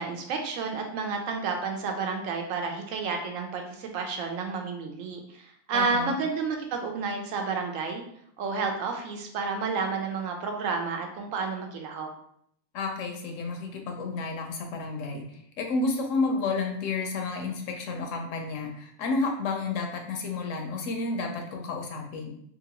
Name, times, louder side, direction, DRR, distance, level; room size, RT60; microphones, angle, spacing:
voice 1, 0.0-8.0 8.4-12.1, right 4 dB, 80° right, 3 dB, 1.0 m, -31 dB
voice 2, 5.7-6.2 12.7-22.3, left 3 dB, 75° left, 2 dB, 0.9 m, -31 dB
2.9 x 2.4 x 2.8 m, 0.69 s
omnidirectional pair, 1.4 m